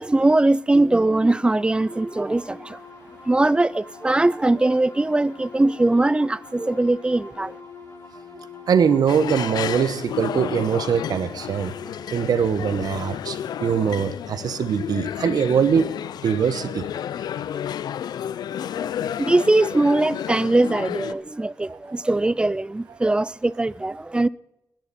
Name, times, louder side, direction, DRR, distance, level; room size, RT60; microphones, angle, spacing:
voice 1, 0.0-2.8 3.3-7.6 18.8-18.9 19.2-24.3, right 2 dB, 15° right, 0.4 m, -21 dB
sound 1, 0.9-14.4, left 4 dB, 40° left, 7.0 m, -44 dB
voice 2, 8.4-11.7 12.1-15.9 16.2-16.9 21.9-22.0, right 7 dB, 70° right, 1.1 m, -22 dB
sound 2, 9.1-21.1, left 10 dB, 80° left, 0.5 m, -31 dB
20.5 x 10.5 x 4.2 m
cardioid pair, 85°, 7 cm